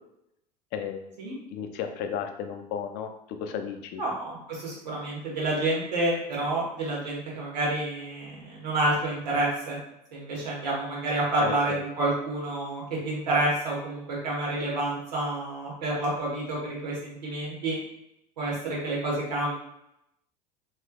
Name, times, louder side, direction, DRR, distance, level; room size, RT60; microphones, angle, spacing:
voice 1, 0.7-1.2 1.5-4.0 11.4-11.8, left 7 dB, 55° left, 6 dB, 0.5 m, -34 dB
voice 2, 4.0-9.8 10.1-17.8 18.4-19.5, right 2 dB, 85° right, -4 dB, 1.3 m, -29 dB
3.3 x 3.1 x 2.3 m, 0.80 s
hypercardioid pair, 85°, 21 cm